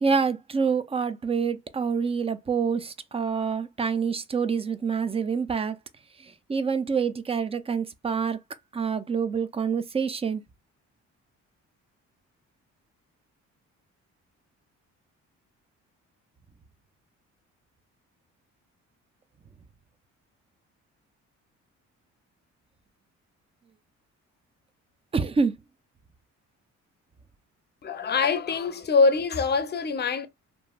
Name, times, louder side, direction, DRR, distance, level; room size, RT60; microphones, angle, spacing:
voice 1, 0.0-5.8 6.2-8.4 8.7-10.4 25.1-25.6, right 5 dB, 20° right, 0.4 m, -27 dB
voice 2, 27.8-30.3, left 4 dB, 35° left, 0.6 m, -24 dB
3.0 x 2.5 x 2.2 m
cardioid pair, 90°, 30 cm